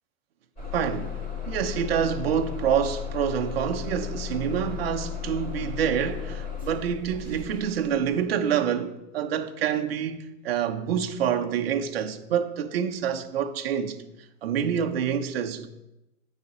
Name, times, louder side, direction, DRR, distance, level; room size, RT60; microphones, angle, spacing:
Bus / Engine starting, 0.6-8.3, left 7 dB, 20° left, 2.3 m, -35 dB
voice 1, 0.7-14.0 14.4-15.7, right 8 dB, 45° right, 0.7 m, -27 dB
8.1 x 4.2 x 6.0 m
hypercardioid pair, 170°, 43 cm